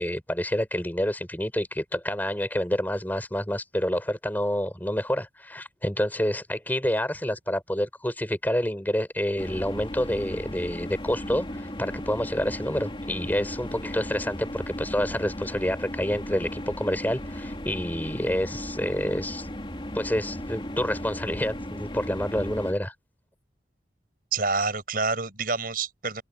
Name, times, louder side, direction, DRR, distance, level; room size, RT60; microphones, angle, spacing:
voice 1, 0.0-19.5 19.9-22.9, equal, 10° left, 5.5 m, -28 dB
sound 1, 9.4-22.7, left 1 dB, 30° left, 3.0 m, -36 dB
voice 2, 24.3-26.2, right 4 dB, 50° right, 7.0 m, -27 dB
open air
head